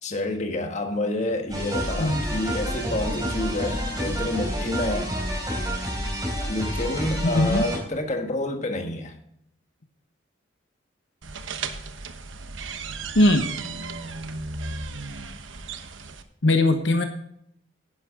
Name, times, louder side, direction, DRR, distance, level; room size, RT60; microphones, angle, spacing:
voice 1, 0.0-5.1 6.4-9.1, left 1 dB, 40° left, 5 dB, 1.5 m, -28 dB
sound 1, 1.5-7.8, equal, 20° right, 4.1 m, -29 dB
voice 2, 7.2-7.6 13.1-13.4 16.4-17.0, left 1 dB, 70° left, 6 dB, 1.1 m, -20 dB
sound 2, 11.2-16.2, right 4 dB, 85° right, 1.1 m, -35 dB
11.0 x 10.5 x 3.7 m, 0.72 s
head